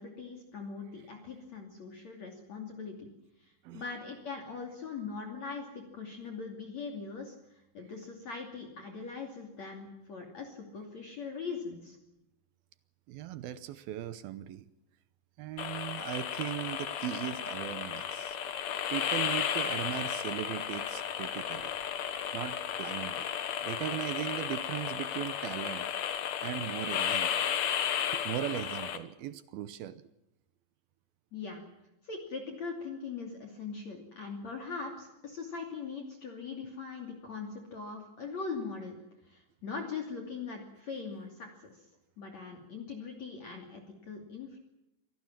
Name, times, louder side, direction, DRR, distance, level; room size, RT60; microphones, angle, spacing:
voice 1, 0.0-3.1 3.4-12.0 31.3-31.6 32.0-39.0 39.3-41.8 42.2-44.6, left 5 dB, 40° left, 2 dB, 3.5 m, -41 dB
voice 2, 13.1-14.7 15.4-18.4 18.9-21.7 22.3-23.3 23.6-25.9 26.4-27.5 28.1-30.0, right 12 dB, 75° right, 14 dB, 2.3 m, -38 dB
sound 1, 15.6-29.0, left 9 dB, 75° left, 1.6 m, -34 dB
25.0 x 18.5 x 7.5 m, 0.89 s
omnidirectional pair, 5.2 m